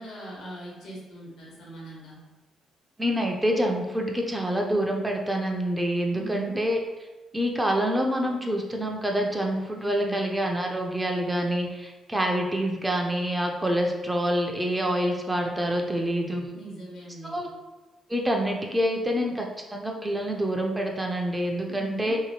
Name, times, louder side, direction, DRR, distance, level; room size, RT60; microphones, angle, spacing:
voice 1, 0.0-2.2 6.1-6.6 9.7-10.3 16.5-17.4 21.7-22.2, right 2 dB, 80° left, -3 dB, 1.0 m, -40 dB
voice 2, 3.0-6.8 7.3-16.5 17.2-17.5 18.1-19.5 19.7-22.2, equal, 10° right, 1 dB, 0.4 m, -26 dB
2.8 x 2.6 x 2.8 m, 1.1 s
cardioid pair, 90°, 0 cm